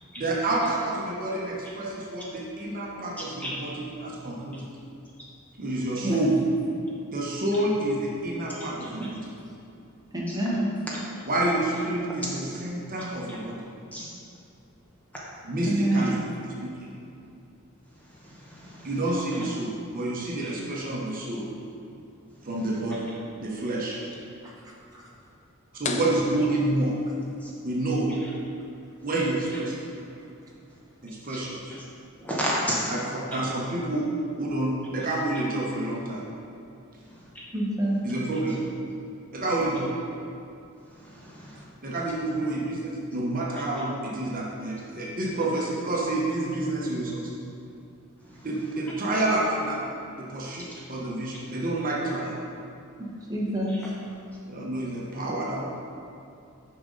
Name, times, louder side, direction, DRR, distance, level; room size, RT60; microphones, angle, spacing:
voice 1, 0.2-4.7 5.6-6.3 7.1-9.2 11.3-13.7 15.5-16.2 16.6-16.9 18.8-21.4 22.4-23.1 23.4-24.0 25.7-26.9 27.6-28.2 29.0-29.8 31.0-31.8 32.9-34.1 34.4-36.2 38.0-38.6 39.3-39.9 41.8-47.4 48.4-49.8 50.2-52.3 54.5-55.6, right 2 dB, 40° right, -4 dB, 1.0 m, -28 dB
voice 2, 10.1-10.7 15.7-16.0 24.4-24.5 24.9-25.0 37.5-38.0 53.0-53.8, right 1 dB, 15° right, -5 dB, 1.1 m, -27 dB
voice 3, 13.0-13.4 13.9-14.1 15.9-16.1 17.9-19.2 20.4-20.5 22.4-22.7 27.4-27.5 28.2-28.3 31.3-31.4 31.7-31.8 32.2-33.1 37.1-37.4 40.8-41.6 48.2-48.5 50.7-50.8 53.7-53.9, equal, 5° left, -6 dB, 1.0 m, -35 dB
sound 1, 25.8-27.5, left 5 dB, 35° left, 0.4 m, -36 dB
6.8 x 5.1 x 3.9 m, 2.6 s
head